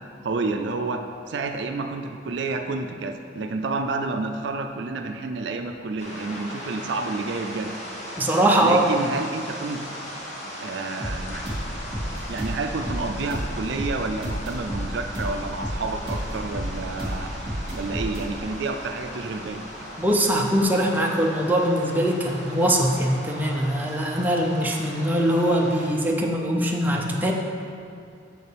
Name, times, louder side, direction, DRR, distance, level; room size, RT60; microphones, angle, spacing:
voice 1, 0.0-7.7 8.6-9.8 10.6-11.4 12.3-19.6, right 3 dB, 60° right, 5 dB, 0.4 m, -30 dB
sound 1, 6.0-25.9, equal, 35° left, 1.2 m, -38 dB
voice 2, 8.2-8.9 20.0-27.3, right 1 dB, 10° right, -1 dB, 0.5 m, -22 dB
sound 2, 11.0-20.6, equal, 25° right, 1.9 m, -32 dB
7.8 x 6.8 x 3.4 m, 2.4 s
head